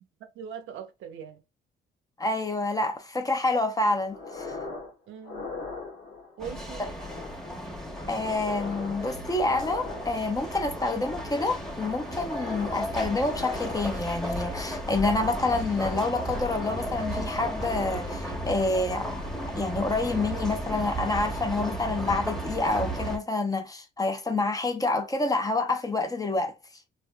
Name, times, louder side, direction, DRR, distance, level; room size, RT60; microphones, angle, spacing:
voice 1, 0.2-1.4 5.1-5.6 6.4-6.9, right 8 dB, 80° right, 0.7 m, -41 dB
voice 2, 2.2-4.6 6.8-6.9 8.1-19.2 19.6-26.5, left 2 dB, 20° left, 0.6 m, -28 dB
sound 1, 4.1-4.9 5.2-6.4 6.9-7.6 7.9-10.5 10.9-11.6 11.9-12.9 13.2-14.3 14.9-15.5 16.0-18.5 18.9-19.5 19.9-20.1, left 3 dB, 65° left, 1.2 m, -42 dB
sound 2, 6.4-23.2, right 1 dB, ahead, 1.0 m, -34 dB
3.4 x 2.6 x 2.2 m
cardioid pair, 90°, 20 cm